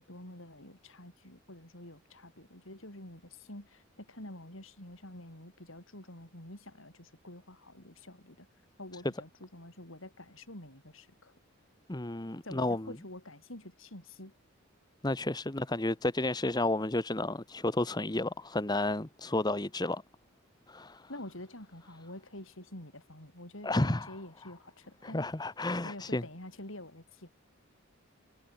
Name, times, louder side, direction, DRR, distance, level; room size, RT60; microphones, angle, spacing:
voice 1, 0.0-8.5 8.8-11.3 12.4-14.3 21.1-25.3 25.8-27.3, left 1 dB, 65° left, 7.1 m, -48 dB
voice 2, 11.9-12.9 15.0-20.0 20.7-21.1 23.6-24.1 25.0-26.2, left 2 dB, 20° left, 1.0 m, -31 dB
head